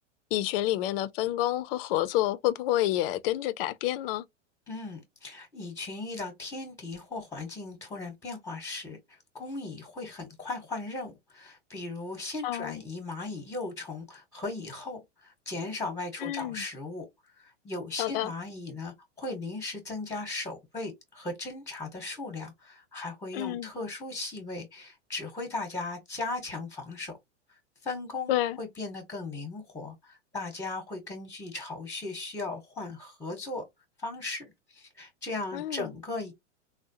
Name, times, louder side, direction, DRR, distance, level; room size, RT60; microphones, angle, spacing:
voice 1, 0.3-4.2 12.4-12.8 16.2-16.6 18.0-18.3 23.3-23.7 28.3-28.6 35.5-35.9, left 14 dB, 50° left, 0.5 m, -29 dB
voice 2, 4.7-17.1 17.4-27.1 27.8-33.6 34.0-36.3, left 3 dB, 10° left, 0.9 m, -37 dB
3.6 x 2.1 x 2.7 m
hypercardioid pair, 125°, 37 cm